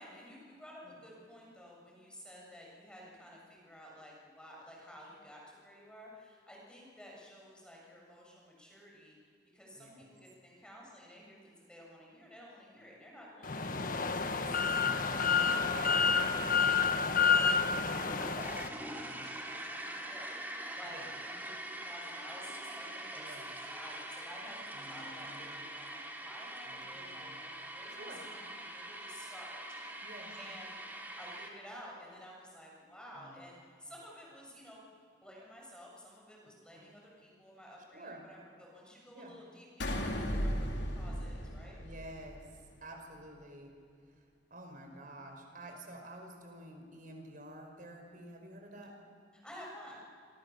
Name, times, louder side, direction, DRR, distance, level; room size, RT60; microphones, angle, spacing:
voice 1, 0.0-9.2 9.5-20.4 20.7-23.4 23.7-29.6 29.8-30.1 30.4-30.8 31.2-34.9 35.2-41.8 49.4-50.0, equal, 5° left, -3 dB, 7.1 m, -53 dB
voice 2, 9.8-10.1 13.6-14.1 16.0-16.2 18.5-19.4 20.8-21.1 23.2-23.5 24.7-25.6 26.7-27.3 27.9-28.2 30.0-30.4 33.1-33.4 36.8-36.9 37.9-38.2 39.1-39.3 40.1-40.8 41.8-42.5 42.8-43.7 44.5-48.9, right 1 dB, 50° right, 3 dB, 5.4 m, -51 dB
sound 1, 13.4-18.7, left 6 dB, 50° left, 1.4 m, -29 dB
sound 2, 17.7-31.5, right 1 dB, 10° right, 2.8 m, -44 dB
sound 3, 39.8-42.4, equal, 75° left, 3.7 m, -35 dB
27.0 x 26.5 x 7.1 m, 2.2 s
head